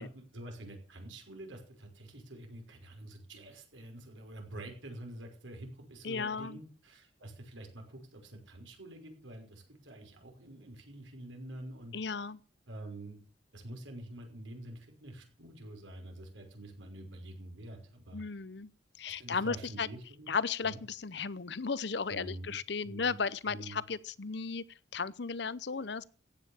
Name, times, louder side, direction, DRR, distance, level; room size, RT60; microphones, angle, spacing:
voice 1, 0.0-11.9 12.7-13.2 13.5-18.2 19.0-20.3 20.6-20.8 22.1-22.6 22.8-23.2 23.5-23.8, right 1 dB, 85° right, 5.5 m, -47 dB
voice 2, 6.0-6.6 11.9-12.4 18.1-18.7 19.0-19.9 20.3-24.6 24.9-26.1, left 5 dB, 65° left, 0.8 m, -35 dB
15.0 x 9.5 x 7.1 m
head